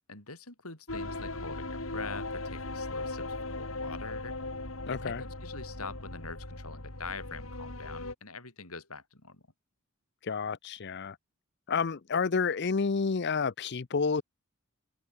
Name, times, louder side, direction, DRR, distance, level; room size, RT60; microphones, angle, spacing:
voice 1, 0.1-4.4 4.9-9.4, left 4 dB, 85° left, 7.7 m, -44 dB
sound 1, 0.9-8.1, left 2 dB, 65° left, 3.8 m, -38 dB
voice 2, 4.9-5.2 10.2-11.2 11.7-14.2, left 5 dB, 50° left, 0.6 m, -30 dB
head